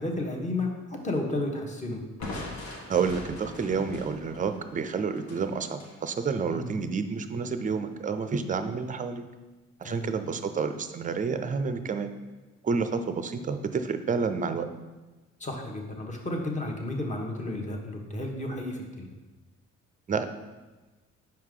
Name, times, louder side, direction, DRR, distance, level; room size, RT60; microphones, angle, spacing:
voice 1, 0.0-2.0 6.5-6.7 9.8-10.1 15.4-19.1, left 2 dB, 25° left, 1 dB, 1.1 m, -32 dB
Crushing, 2.2-6.0, left 2 dB, 70° left, 1.2 m, -41 dB
voice 2, 2.9-9.2 9.8-12.1 12.6-14.7 20.1-20.2, right 5 dB, 25° right, 9 dB, 0.5 m, -29 dB
5.8 x 4.7 x 3.7 m, 1.2 s
cardioid pair, 90°, 30 cm